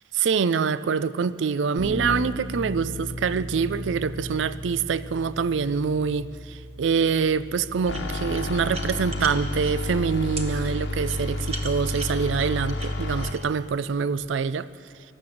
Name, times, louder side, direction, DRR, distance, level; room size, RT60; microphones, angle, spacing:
voice 1, 0.1-14.7, right 5 dB, 80° right, 0.4 m, -25 dB
Bass guitar, 1.8-8.0, equal, 15° right, 2.4 m, -36 dB
sound 1, 7.8-9.7 10.4-10.5 11.0-13.4, right 3 dB, 35° right, 1.2 m, -37 dB
sound 2, 7.9-13.3, left 1 dB, 70° left, 1.1 m, -30 dB
15.5 x 12.0 x 7.7 m
head